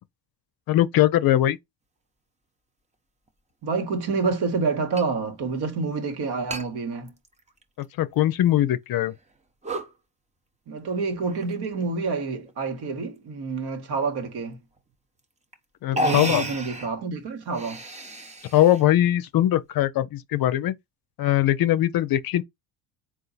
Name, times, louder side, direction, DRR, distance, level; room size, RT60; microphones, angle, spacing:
voice 1, 0.7-1.6 8.0-9.1 15.8-16.4 18.5-20.7 21.2-22.4, left 13 dB, 50° left, 0.6 m, -21 dB
sound 1, 3.3-3.4 5.0-5.1 5.4-5.5 6.5-6.7 7.1-7.8 8.4-8.5 9.1-9.3 9.6-9.9 11.2-11.6 12.4-12.9 14.8-14.9 15.5-15.6 15.9-16.9 17.4-18.8, right 1 dB, 15° right, 0.9 m, -32 dB
voice 2, 3.6-7.1 10.7-14.6 15.9-17.8, right 4 dB, 55° right, 1.5 m, -28 dB
3.8 x 2.5 x 4.0 m
supercardioid pair, 80°, 46 cm